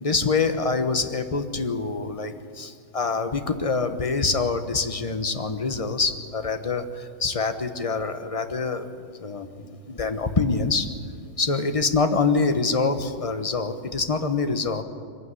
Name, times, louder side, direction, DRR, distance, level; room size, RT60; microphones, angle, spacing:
voice 1, 0.0-8.9 9.2-10.9 11.4-14.8, left 4 dB, 25° left, 8 dB, 1.0 m, -25 dB
23.0 x 15.5 x 9.8 m, 2.4 s
omnidirectional pair, 1.9 m